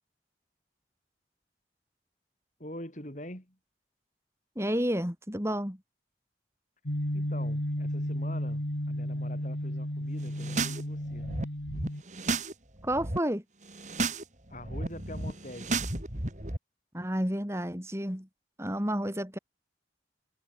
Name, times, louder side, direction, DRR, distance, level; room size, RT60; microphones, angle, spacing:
voice 1, 2.6-3.6 7.1-11.3 14.5-15.9, left 1 dB, 40° left, 7.8 m, -44 dB
voice 2, 4.6-5.8 12.8-13.4 16.9-18.3 18.6-19.4, equal, 15° right, 6.0 m, -30 dB
sound 1, 6.9-12.0, equal, 85° left, 4.5 m, -33 dB
sound 2, 10.3-10.8 11.1-12.5 12.8-13.2 13.7-14.2 14.5-16.6, right 3 dB, 40° right, 3.8 m, -33 dB
head